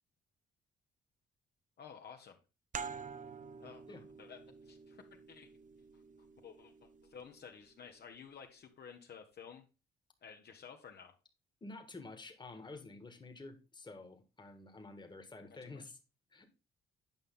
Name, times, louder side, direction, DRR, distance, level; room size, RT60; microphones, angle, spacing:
voice 1, 1.8-2.4 3.6-5.5 6.4-9.7 10.2-11.2 15.6-15.8, left 7 dB, 55° left, 4 dB, 1.0 m, -53 dB
sound 1, 2.7-8.0, right 6 dB, 40° right, 0.6 m, -49 dB
voice 2, 11.6-16.0 16.3-16.6, left 3 dB, 20° left, 7 dB, 1.6 m, -50 dB
8.9 x 5.5 x 3.7 m, 0.31 s
cardioid pair, 90°, 20 cm